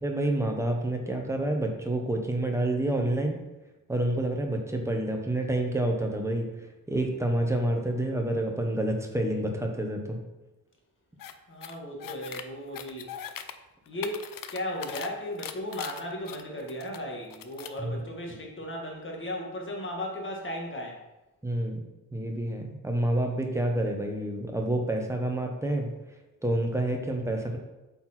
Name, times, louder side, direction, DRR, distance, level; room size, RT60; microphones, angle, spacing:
voice 1, 0.0-3.4 3.9-6.5 6.9-10.2 17.8-17.9 21.4-21.8 22.1-25.9 26.4-27.6, right 1 dB, 10° right, 2 dB, 1.0 m, -28 dB
sound 1, 11.2-11.3 11.6-12.4 12.7-13.5 13.9-15.1 15.4-17.0 17.3-17.8, left 9 dB, 75° left, 0.6 m, -40 dB
voice 2, 11.5-13.1 13.9-21.0, left 1 dB, 35° left, 0 dB, 1.6 m, -36 dB
8.3 x 4.5 x 4.3 m, 1.0 s
wide cardioid pair, 150°, 34 cm